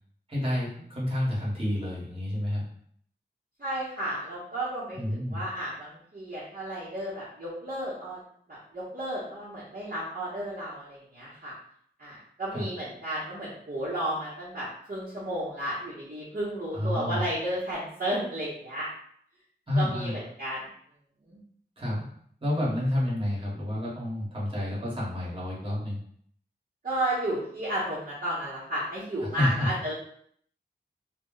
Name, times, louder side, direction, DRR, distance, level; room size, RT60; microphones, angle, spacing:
voice 1, 0.3-2.6 4.9-5.4 12.5-12.7 16.7-17.2 19.7-20.1 21.8-22.1 22.4-26.0 29.2-29.7, left 1 dB, 30° right, -6 dB, 1.3 m, -29 dB
voice 2, 3.6-8.2 8.5-11.5 12.0-18.9 19.8-20.7 21.3-21.4 26.8-29.9, right 1 dB, 45° right, -10 dB, 0.9 m, -33 dB
2.2 x 2.1 x 3.7 m, 0.64 s
wide cardioid pair, 60°, 19 cm